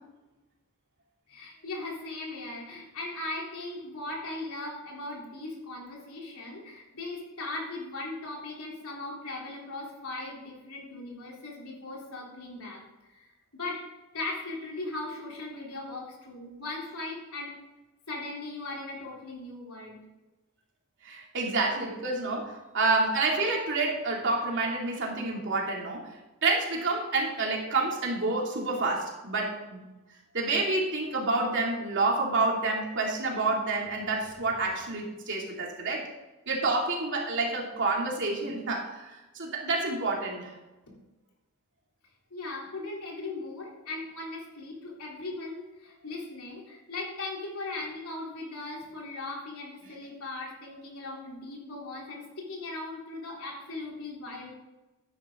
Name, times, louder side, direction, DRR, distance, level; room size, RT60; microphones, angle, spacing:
voice 1, 1.3-12.8 13.1-13.9 14.1-17.5 18.1-20.0 42.3-54.5, left 2 dB, 75° left, -2 dB, 3.6 m, -38 dB
voice 2, 21.0-26.1 26.4-29.8 30.3-36.1 36.5-40.5, right 3 dB, 55° right, -1 dB, 2.9 m, -28 dB
12.5 x 10.0 x 3.9 m, 1.1 s
head